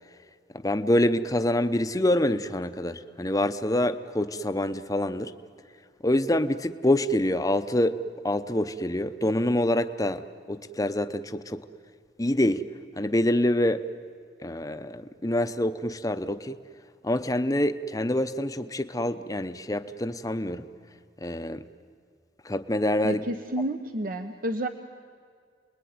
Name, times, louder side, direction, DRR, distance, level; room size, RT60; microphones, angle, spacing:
voice 1, 0.5-5.3 6.0-11.7 12.2-12.6 13.0-13.8 14.4-16.5 17.0-20.7 21.2-21.6 22.4-23.2, left 1 dB, 20° left, 10 dB, 0.8 m, -26 dB
voice 2, 23.0-24.7, right 1 dB, 50° right, 7 dB, 0.9 m, -30 dB
29.5 x 21.0 x 9.5 m, 2.1 s
head